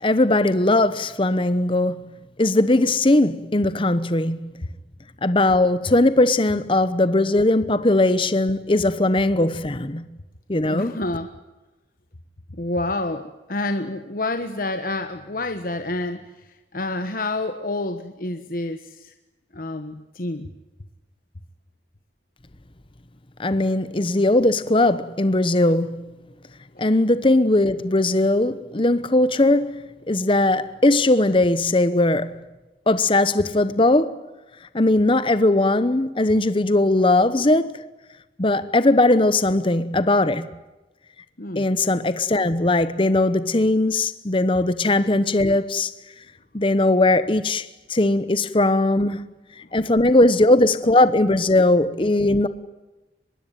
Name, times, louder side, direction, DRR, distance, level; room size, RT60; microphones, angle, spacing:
voice 1, 0.0-2.0 2.4-4.5 5.2-10.0 10.5-11.0 23.4-26.1 26.8-32.4 32.9-34.2 34.7-37.8 38.4-40.5 41.6-45.9 46.5-49.3 49.7-52.5, left 2 dB, 30° left, 0.9 m, -19 dB
voice 2, 10.6-11.3 12.5-19.1 19.5-20.5 26.7-26.8 41.4-41.7, left 2 dB, 50° left, 1.3 m, -28 dB
24.5 x 21.5 x 9.2 m
head